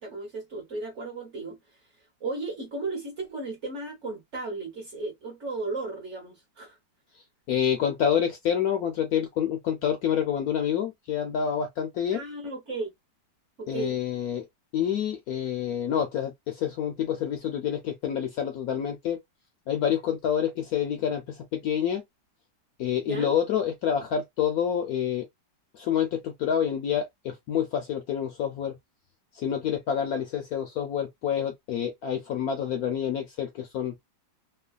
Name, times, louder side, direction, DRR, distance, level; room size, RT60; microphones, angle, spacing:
voice 1, 0.0-1.6 2.2-6.8 12.1-12.9 13.6-14.0 23.0-23.3, right 3 dB, 50° right, 1.0 m, -35 dB
voice 2, 7.5-12.2 13.7-14.4 14.7-19.2 19.7-22.0 22.8-25.3 25.7-28.7 29.3-33.9, left 9 dB, 70° left, 0.9 m, -28 dB
3.1 x 2.2 x 2.3 m
omnidirectional pair, 2.0 m